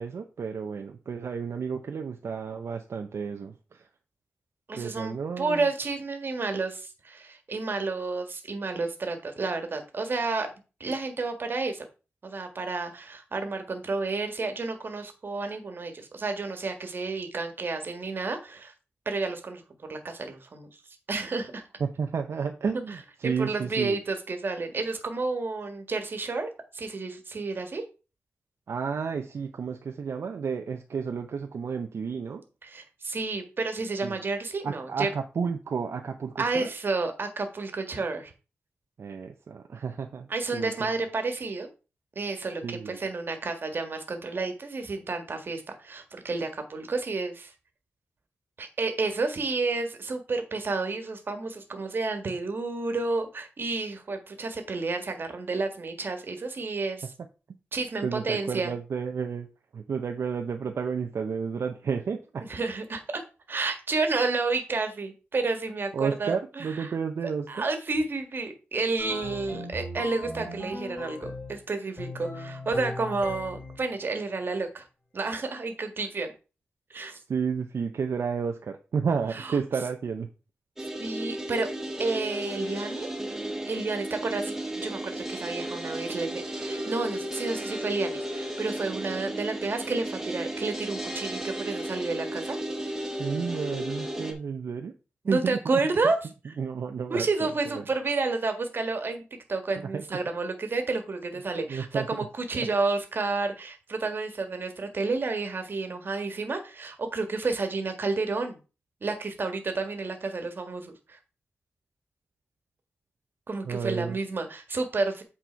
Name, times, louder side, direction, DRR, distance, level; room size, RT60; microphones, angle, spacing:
voice 1, 0.0-3.9 4.7-5.7 21.8-24.0 28.7-32.4 34.0-34.2 34.6-36.7 39.0-40.7 42.6-43.0 58.0-59.5 59.7-62.5 65.9-67.7 77.3-80.3 93.2-94.9 95.3-95.6 96.6-97.5 97.7-97.8 99.8-100.0 101.7-102.1 113.7-114.2, right 6 dB, 70° right, 4 dB, 0.7 m, -31 dB
voice 2, 4.7-10.5 10.8-11.8 12.2-18.7 19.0-19.6 19.9-20.7 21.1-21.6 23.2-27.8 32.6-35.1 36.4-38.3 40.3-41.7 42.1-47.5 48.6-57.1 57.7-58.7 62.5-63.2 63.5-66.9 67.5-74.9 75.1-76.3 76.9-77.2 79.3-79.6 81.0-81.7 82.0-83.1 83.7-92.6 95.2-96.2 96.4-96.5 97.1-99.2 99.5-108.6 109.0-111.2 113.5-115.2, right 3 dB, 50° right, 6 dB, 1.6 m, -30 dB
sound 1, 69.0-71.6 72.0-73.8, left 1 dB, 15° left, 3.4 m, -38 dB
sound 2, 80.8-94.3, right 1 dB, 10° right, 1.6 m, -34 dB
8.3 x 4.3 x 4.5 m, 0.32 s
wide cardioid pair, 110°, 5 cm